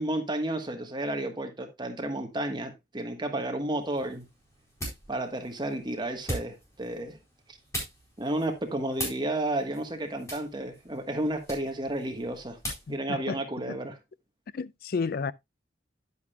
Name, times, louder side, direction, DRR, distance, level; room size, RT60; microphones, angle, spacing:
voice 1, 0.0-4.3 5.1-7.2 8.2-12.6 12.9-14.0, right 1 dB, 25° right, 1.3 m, -32 dB
sound 1, 3.8-13.0, equal, 15° left, 4.2 m, -41 dB
voice 2, 12.9-13.4 13.7-13.8 14.5-15.3, left 5 dB, 55° left, 0.4 m, -32 dB
10.5 x 8.3 x 2.3 m
head